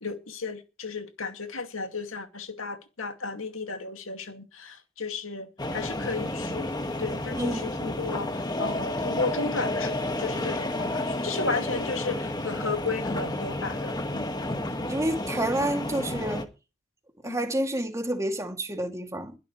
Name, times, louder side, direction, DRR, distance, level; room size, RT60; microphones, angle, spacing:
voice 1, 0.0-6.7 7.0-8.3 8.6-14.3 17.2-17.4, left 4 dB, 85° left, 2.3 m, -34 dB
sound 1, 5.6-16.4, left 1 dB, 20° left, 1.8 m, -31 dB
voice 2, 7.4-7.7 14.9-16.4 17.2-19.4, right 1 dB, 15° right, 2.6 m, -29 dB
22.0 x 12.0 x 3.2 m
head